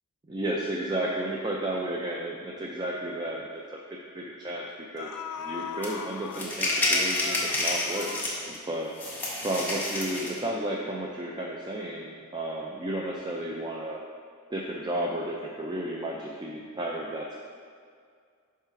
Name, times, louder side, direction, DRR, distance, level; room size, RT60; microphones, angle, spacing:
voice 1, 0.3-3.8 4.1-4.7 4.9-5.1 5.4-8.9 9.4-14.0 14.5-17.4, right 1 dB, 20° right, -2 dB, 0.4 m, -33 dB
sound 1, 2.8-2.9 3.3-3.5 4.5-4.6 5.0-8.9 9.2-9.3, left 8 dB, 85° left, 0.3 m, -39 dB
sound 2, 5.8-5.9 6.3-8.6 9.0-10.4, left 1 dB, 10° left, 1.2 m, -29 dB
5.6 x 4.8 x 5.8 m, 2.2 s
head